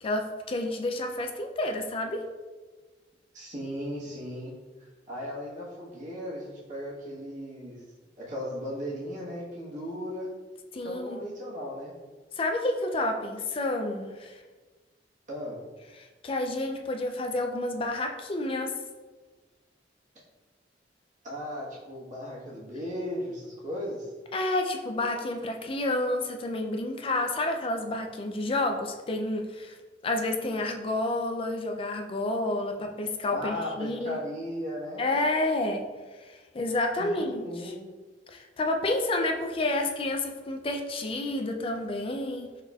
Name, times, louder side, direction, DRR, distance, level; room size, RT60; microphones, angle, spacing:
voice 1, 0.0-2.2 10.7-11.2 12.4-14.4 16.0-18.7 24.3-29.8 30.0-34.2 35.0-35.9 36.3-37.7 38.3-42.6, left 2 dB, 30° left, 4 dB, 0.4 m, -30 dB
voice 2, 3.3-4.5 4.8-7.8 8.2-10.3 10.8-11.9 15.3-15.6 21.2-24.1 33.3-35.0 37.0-37.8, equal, 45° right, -6 dB, 1.3 m, -36 dB
4.2 x 3.8 x 2.3 m, 1.3 s
head